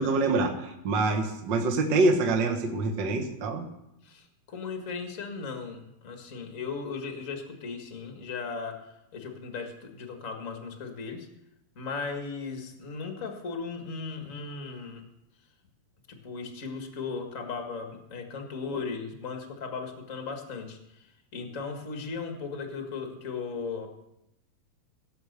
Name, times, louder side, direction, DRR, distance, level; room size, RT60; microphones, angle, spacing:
voice 1, 0.0-3.7 18.7-18.8, right 3 dB, 65° right, 4 dB, 1.1 m, -26 dB
voice 2, 4.0-8.8 9.1-11.3 11.7-15.0 16.1-21.0 21.3-23.9, left 4 dB, 40° left, 3 dB, 1.1 m, -37 dB
17.0 x 7.0 x 6.7 m, 0.85 s
omnidirectional pair, 4.3 m